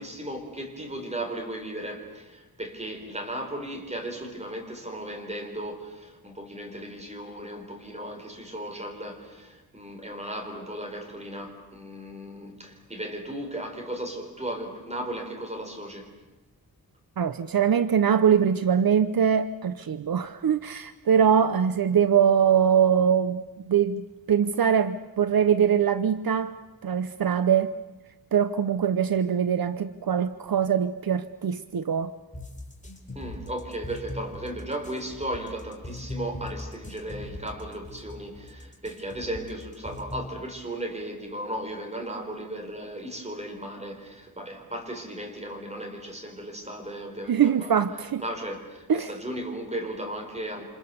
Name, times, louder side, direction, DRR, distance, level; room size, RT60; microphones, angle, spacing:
voice 1, 0.0-16.1 33.1-47.8 48.2-50.6, right 1 dB, 20° right, 4.3 m, -36 dB
voice 2, 17.2-27.7 28.3-32.1 47.3-48.2 48.9-49.1, right 8 dB, 70° right, 0.8 m, -23 dB
sound 1, 32.3-40.4, left 1 dB, 20° left, 3.9 m, -39 dB
28.5 x 27.0 x 6.9 m
wide cardioid pair, 125°, 37 cm